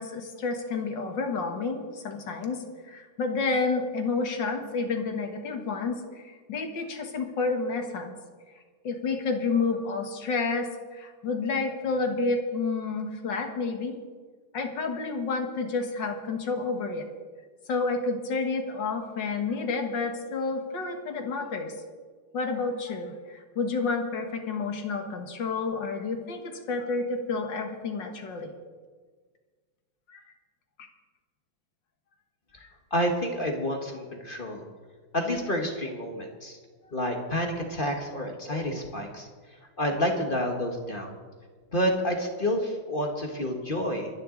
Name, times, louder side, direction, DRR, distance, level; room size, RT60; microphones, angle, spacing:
voice 1, 0.0-8.2 8.8-14.0 14.5-17.1 17.7-21.7 22.3-28.5 30.1-30.2 32.6-32.7 36.1-36.3 38.5-38.8 40.4-40.5, left 4 dB, 60° left, 5 dB, 2.1 m, -30 dB
voice 2, 32.9-34.6 35.1-36.6 36.9-39.3 39.8-41.1 41.7-44.1, equal, 30° left, 3 dB, 1.3 m, -29 dB
24.0 x 10.5 x 3.9 m, 1.5 s
omnidirectional pair, 2.4 m